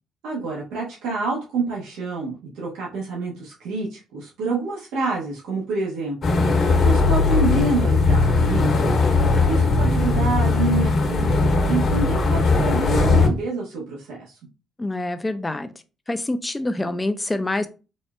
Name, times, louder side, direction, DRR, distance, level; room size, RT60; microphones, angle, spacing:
voice 1, 0.2-6.3 6.8-8.8 9.5-14.4, right 3 dB, 85° right, -4 dB, 1.1 m, -27 dB
sound 1, 6.2-13.3, left 3 dB, 50° left, 1.2 m, -19 dB
voice 2, 14.8-15.7 16.1-17.7, left 2 dB, 15° left, 9 dB, 0.5 m, -26 dB
4.2 x 2.4 x 3.2 m, 0.32 s
cardioid pair, 80°, 0 cm